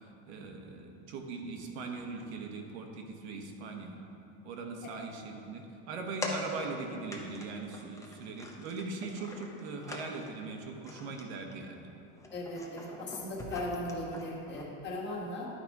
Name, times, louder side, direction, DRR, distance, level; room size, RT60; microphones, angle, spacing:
voice 1, 0.3-4.0 4.4-11.8, right 3 dB, 80° right, 3 dB, 1.1 m, -40 dB
sound 1, 6.2-6.8 7.1-7.5 7.7-10.4 10.8-11.2 11.5-11.8 12.1-14.6, left 1 dB, 10° left, 0.7 m, -43 dB
voice 2, 12.3-15.5, left 1 dB, 35° left, -3 dB, 1.7 m, -38 dB
10.5 x 4.2 x 4.7 m, 2.8 s
supercardioid pair, 135°, 33 cm